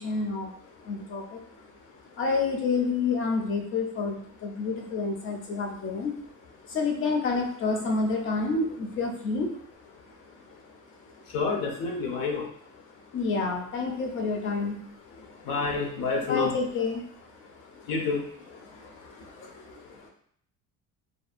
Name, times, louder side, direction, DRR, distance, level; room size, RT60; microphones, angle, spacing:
voice 1, 0.0-1.4 2.2-6.1 6.6-9.5 13.1-14.8 15.2-15.3 16.3-17.0 17.7-17.9 18.6-20.1, left 4 dB, 40° left, 2 dB, 0.5 m, -29 dB
voice 2, 11.3-12.5 15.5-16.5 17.9-18.2, left 4 dB, 80° left, 1 dB, 0.7 m, -28 dB
2.7 x 2.2 x 2.4 m, 0.65 s
cardioid pair, 150°, 33 cm